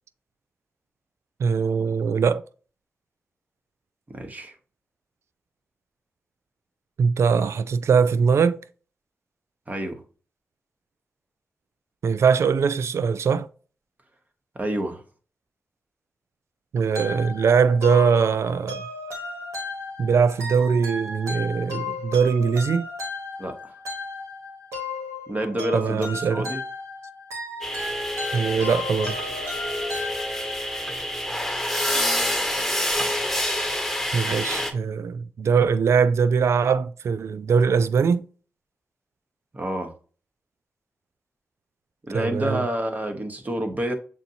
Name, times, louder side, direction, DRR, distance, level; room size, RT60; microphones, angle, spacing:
voice 1, 1.4-2.4 7.0-8.6 12.0-13.5 16.7-18.9 20.0-22.9 25.7-26.5 28.3-29.1 34.1-38.2 42.1-42.6, right 6 dB, 70° right, 0.4 m, -21 dB
voice 2, 4.1-4.5 9.7-10.0 14.5-15.0 23.4-23.7 25.3-26.6 39.5-39.9 42.0-43.9, right 1 dB, 35° right, 1.2 m, -28 dB
sound 1, 16.9-30.8, left 3 dB, 90° right, 1.4 m, -35 dB
sound 2, 27.6-34.7, left 1 dB, 5° left, 1.2 m, -27 dB
7.1 x 2.7 x 2.8 m
cardioid pair, 45°, 5 cm